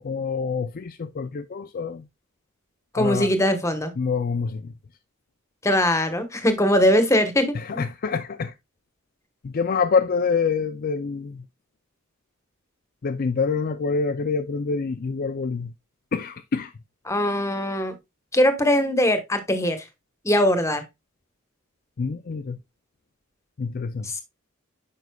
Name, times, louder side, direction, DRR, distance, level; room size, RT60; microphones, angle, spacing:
voice 1, 0.0-2.1 3.0-3.3 4.0-4.7 7.5-8.5 9.4-11.4 13.0-15.7 16.1-16.7 22.0-22.6 23.6-24.1, left 5 dB, 45° left, 0.4 m, -26 dB
voice 2, 2.9-3.9 5.6-7.8 17.1-17.9 18.3-19.8 20.2-20.8 24.1-24.2, left 1 dB, 15° left, 1.1 m, -21 dB
9.2 x 5.5 x 2.3 m
head